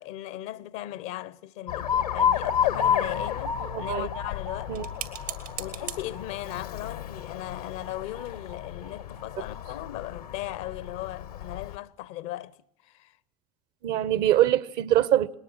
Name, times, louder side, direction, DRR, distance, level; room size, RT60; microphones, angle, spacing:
voice 1, 0.0-4.8 5.6-12.6 12.8-13.2, left 14 dB, 65° left, 0.7 m, -37 dB
Alarm, 1.7-11.8, left 8 dB, 85° left, 1.1 m, -31 dB
sound 1, 3.6-8.8, right 10 dB, 85° right, 2.1 m, -44 dB
voice 2, 3.7-4.1 4.7-4.8 13.8-15.3, right 12 dB, 60° right, 0.8 m, -23 dB
20.5 x 19.5 x 7.2 m
hypercardioid pair, 65°, 19 cm